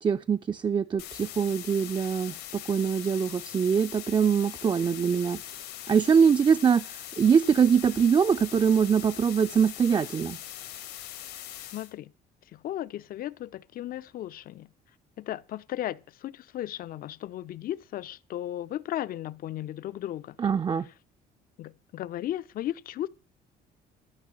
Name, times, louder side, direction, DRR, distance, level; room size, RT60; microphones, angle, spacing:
voice 1, 0.0-5.4 5.9-6.9 7.2-10.4 20.4-20.9, right 7 dB, 25° right, 0.5 m, -23 dB
sound 1, 1.0-11.9, left 12 dB, 90° left, 2.4 m, -41 dB
voice 2, 11.7-12.1 12.5-14.7 15.2-20.4 21.6-23.1, left 12 dB, 60° left, 0.6 m, -35 dB
13.0 x 5.9 x 7.6 m
cardioid pair, 110°, 17 cm